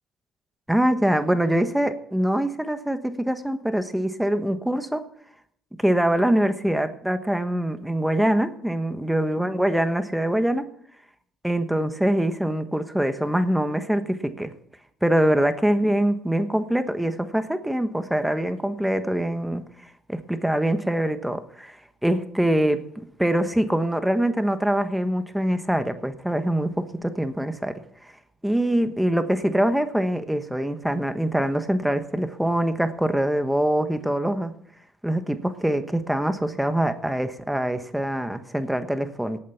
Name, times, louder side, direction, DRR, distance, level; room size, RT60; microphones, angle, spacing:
voice 1, 0.7-5.0 5.8-10.7 11.4-14.5 15.0-21.8 22.0-22.8 23.2-28.1 28.4-34.5 35.0-39.4, right 1 dB, 5° right, 9 dB, 1.3 m, -24 dB
18.5 x 8.6 x 5.8 m, 0.65 s
cardioid pair, 90°, 0 cm